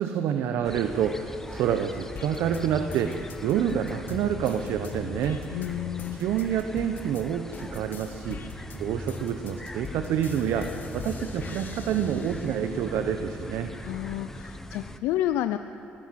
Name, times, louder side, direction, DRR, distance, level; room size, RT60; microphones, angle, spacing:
voice 1, 0.0-5.4 6.1-8.5 8.7-13.7, right 8 dB, 75° right, 8 dB, 0.9 m, -28 dB
sound 1, 0.6-15.0, left 1 dB, 10° left, 1.1 m, -41 dB
sound 2, 2.2-7.2 7.5-12.7 13.2-14.2, left 4 dB, 50° left, 1.8 m, -40 dB
voice 2, 5.5-6.2 13.8-15.6, left 13 dB, 85° left, 10 dB, 0.5 m, -30 dB
23.0 x 15.5 x 7.6 m, 3.0 s
supercardioid pair, 80°, 4 cm